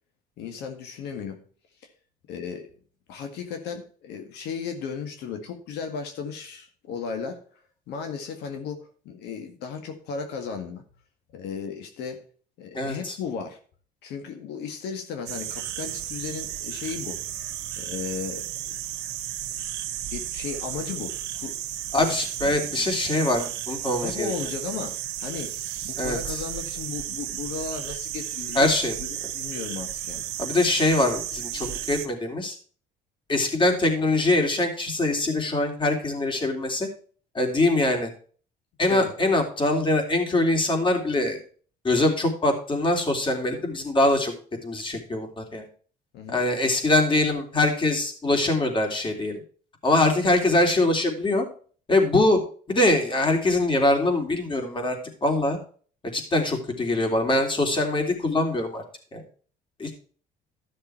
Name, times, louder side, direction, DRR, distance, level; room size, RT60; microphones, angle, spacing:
voice 1, 0.4-1.4 2.3-2.7 3.1-7.4 7.9-10.8 11.3-12.2 12.6-13.6 14.0-17.2 17.8-18.8 19.5-19.6 20.1-21.6 22.0-22.1 22.4-22.9 24.0-25.5 25.8-28.7 29.0-29.1 29.3-30.3 38.9-39.1 46.1-46.4, left 6 dB, 85° left, 5 dB, 1.9 m, -35 dB
voice 2, 12.7-13.1 21.9-24.3 26.0-26.4 28.5-29.0 30.4-32.5 33.3-36.9 37.3-38.1 38.8-41.4 41.8-44.3 44.6-45.7 46.3-49.4 49.8-51.4 51.9-52.4 52.7-55.6 56.1-58.8 59.1-59.2 59.8-59.9, left 2 dB, 30° left, 3 dB, 3.3 m, -23 dB
sound 1, 15.3-32.1, right 11 dB, 80° right, 1.4 m, -33 dB
13.0 x 6.7 x 4.5 m, 0.42 s
cardioid pair, 110°, 17 cm